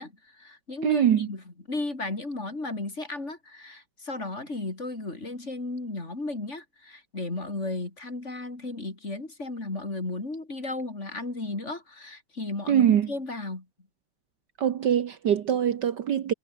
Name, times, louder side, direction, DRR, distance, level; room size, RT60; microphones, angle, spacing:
voice 1, 0.0-1.4 1.7-13.7, left 2 dB, 35° left, 4.2 m, -34 dB
voice 2, 0.8-1.3 12.7-13.1 14.6-16.3, right 9 dB, 60° right, 1.5 m, -23 dB
omnidirectional pair, 2.3 m